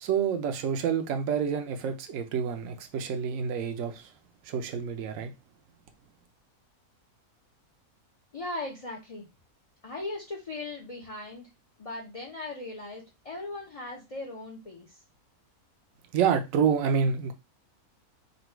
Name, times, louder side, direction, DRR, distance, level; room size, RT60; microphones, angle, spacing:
voice 1, 0.0-4.1 4.5-5.3 16.1-17.3, right 7 dB, 70° right, 1.0 m, -28 dB
voice 2, 8.3-9.3 9.8-11.5 11.8-15.0, left 2 dB, 45° left, 0.4 m, -38 dB
4.0 x 2.2 x 4.4 m
omnidirectional pair, 1.6 m